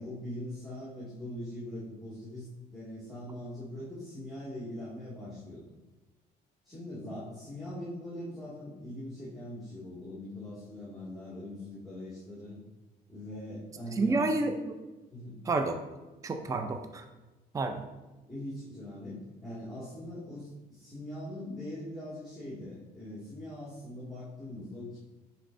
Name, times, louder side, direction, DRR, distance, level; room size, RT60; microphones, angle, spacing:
voice 1, 0.0-5.6 6.6-12.6 13.1-14.3 15.1-15.4 18.3-25.0, left 1 dB, ahead, -10 dB, 2.1 m, -42 dB
voice 2, 13.9-14.8 15.4-15.8 16.2-17.1 17.5-17.9, right 3 dB, 20° right, 6 dB, 0.5 m, -29 dB
10.0 x 4.2 x 2.6 m, 1.1 s
cardioid pair, 110°, 17 cm